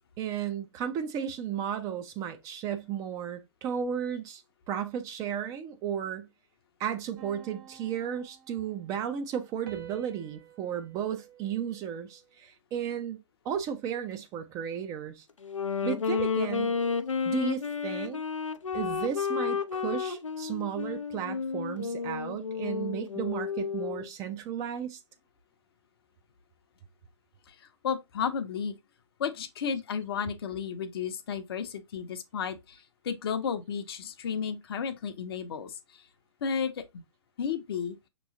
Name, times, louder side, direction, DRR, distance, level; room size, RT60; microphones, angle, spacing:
voice 1, 0.2-4.4 4.7-6.3 6.8-13.2 13.4-15.2 15.8-16.8 17.2-18.2 18.7-25.0, right 9 dB, 20° right, 0.4 m, -34 dB
sound 1, 7.2-8.9 9.7-12.3, right 9 dB, 45° right, 1.0 m, -50 dB
Wind instrument woodwind instrument, 15.4-24.1, left 5 dB, 85° left, 0.5 m, -32 dB
voice 2, 27.5-28.8 29.2-36.1 36.4-37.0 37.4-38.0, left 7 dB, 50° left, 0.7 m, -33 dB
6.0 x 3.0 x 2.6 m
figure-of-eight pair, 120°, 16 cm